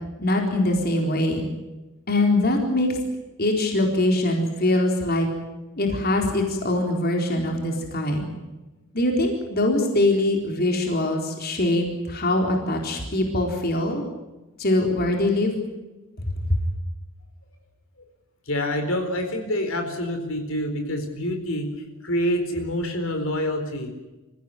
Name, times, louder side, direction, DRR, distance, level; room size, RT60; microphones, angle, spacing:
voice 1, 0.2-1.5 2.1-2.9 3.4-5.3 5.8-8.3 8.9-14.0 14.6-15.5 16.4-16.6, left 1 dB, 45° left, 2 dB, 4.1 m, -22 dB
voice 2, 18.5-23.9, left 1 dB, 60° left, 5 dB, 4.3 m, -27 dB
28.0 x 16.0 x 9.3 m, 1.1 s
head